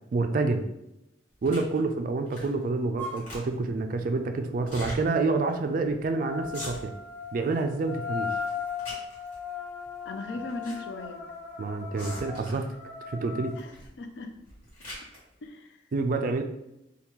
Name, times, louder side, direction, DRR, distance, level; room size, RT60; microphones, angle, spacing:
voice 1, 0.1-0.6 1.4-6.9 7.3-8.3 11.6-12.6 13.1-13.6 15.9-16.4, right 3 dB, 45° right, 6 dB, 0.3 m, -28 dB
sound 1, 1.4-1.8 2.3-2.6 2.9-3.7 4.6-5.0 5.5-5.6 5.8-6.1 6.4-7.1 7.5-8.0 8.4-9.4 10.2-10.8 11.0-11.1 11.9-12.7 13.6-13.9 14.3-15.2, equal, 40° left, 1.5 m, -42 dB
sound 2, 3.0-3.2 6.1-13.6, left 6 dB, 15° left, 0.9 m, -37 dB
voice 2, 10.0-11.3 13.6-13.7 14.0-14.3 15.4-15.8, left 2 dB, 70° left, 6 dB, 0.4 m, -38 dB
2.9 x 2.3 x 3.5 m, 0.89 s
head